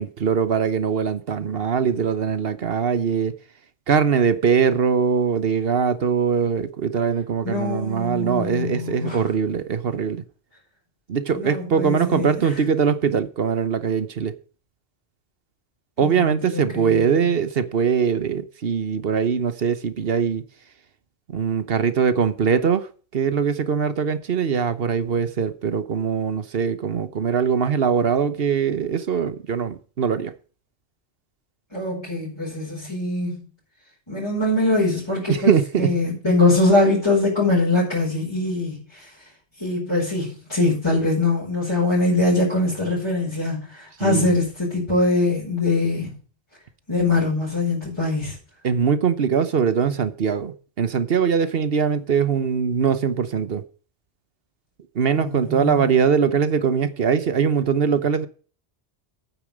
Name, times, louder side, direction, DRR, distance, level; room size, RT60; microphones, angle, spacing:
voice 1, 0.0-3.4 3.9-10.2 11.1-14.4 16.0-20.4 21.3-30.3 35.3-35.9 44.0-44.3 48.6-53.6 54.9-58.3, right 6 dB, 60° right, 1.1 m, -22 dB
voice 2, 7.4-9.2 11.3-12.5 16.0-17.4 31.7-33.5 34.1-35.5 35.8-39.1 39.6-46.1 46.9-48.3 55.2-55.9, left 2 dB, 25° left, 5.0 m, -23 dB
9.2 x 8.4 x 5.1 m
omnidirectional pair, 1.1 m